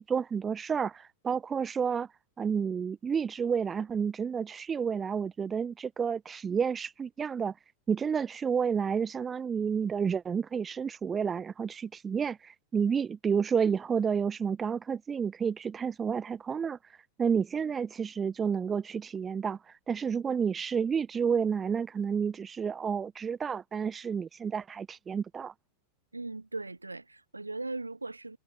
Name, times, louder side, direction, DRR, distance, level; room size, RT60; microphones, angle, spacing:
voice 1, 0.0-2.1 2.4-7.5 7.9-16.8 17.2-25.5, right 6 dB, 20° right, 0.7 m, -30 dB
voice 2, 26.1-28.4, right 2 dB, 80° right, 2.7 m, -38 dB
figure-of-eight pair, 90°, 0 cm